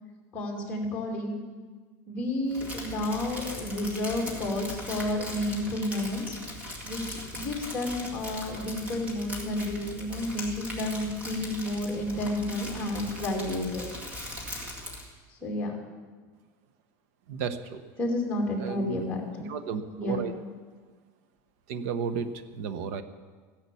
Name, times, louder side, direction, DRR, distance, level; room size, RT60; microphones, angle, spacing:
voice 1, 0.3-1.4 2.1-6.4 6.8-13.9 15.3-15.7 18.0-19.4 20.0-20.2, left 1 dB, 15° left, -1 dB, 2.6 m, -31 dB
Crumpling crinkling, 2.5-15.1, left 1 dB, 15° right, 2.0 m, -40 dB
voice 2, 17.3-17.8 18.6-19.1 19.4-20.3 21.7-23.0, right 6 dB, 55° right, 11 dB, 0.9 m, -33 dB
14.5 x 10.5 x 7.0 m, 1.5 s
supercardioid pair, 180°, 9 cm